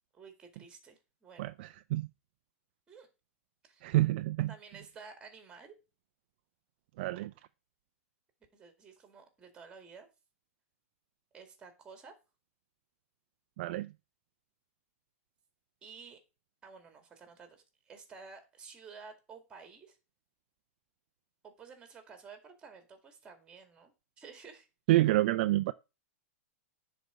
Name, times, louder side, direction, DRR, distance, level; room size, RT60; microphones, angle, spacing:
voice 1, 0.1-1.5 2.9-3.1 3.6-3.9 4.5-5.7 8.5-10.1 11.3-12.1 15.8-16.2 16.6-20.0 21.4-24.7, right 5 dB, 10° right, 2.0 m, -52 dB
voice 2, 1.4-2.1 3.8-4.5 7.0-7.3 13.6-13.9 24.9-25.7, right 16 dB, 45° right, 0.4 m, -28 dB
10.0 x 4.2 x 6.9 m
hypercardioid pair, 160°, 8 cm